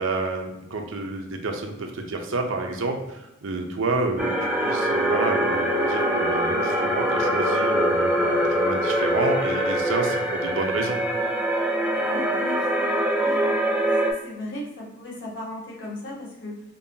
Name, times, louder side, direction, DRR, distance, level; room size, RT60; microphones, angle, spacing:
voice 1, 0.0-11.0, right 3 dB, 85° right, 4 dB, 0.6 m, -29 dB
sound 1, 4.2-14.1, right 1 dB, 5° right, 0.4 m, -23 dB
voice 2, 11.9-13.5 13.8-16.6, left 1 dB, 65° left, -4 dB, 1.1 m, -37 dB
5.2 x 2.2 x 2.7 m, 0.94 s
head